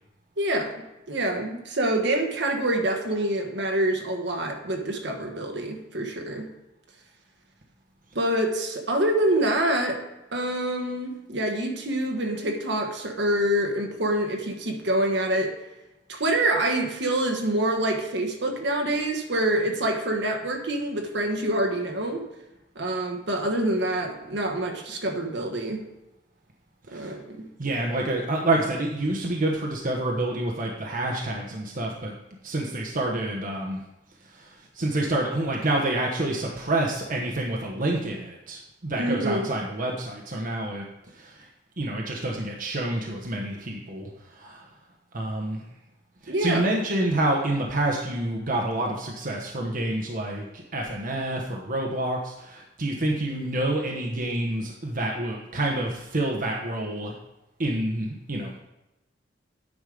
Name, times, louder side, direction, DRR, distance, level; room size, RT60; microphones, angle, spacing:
voice 1, 0.4-0.7 1.1-6.5 8.1-10.0 10.3-15.5 16.1-22.2 22.7-25.8 26.9-27.5 39.0-39.5 46.3-46.7, right 1 dB, 65° right, 3 dB, 1.3 m, -26 dB
voice 2, 27.6-32.1 32.4-33.8 34.3-40.9 41.1-41.5 41.8-44.7 45.1-45.6 46.2-57.1 57.6-58.6, right 1 dB, 45° right, 0 dB, 1.0 m, -28 dB
9.7 x 5.4 x 5.0 m, 0.95 s
head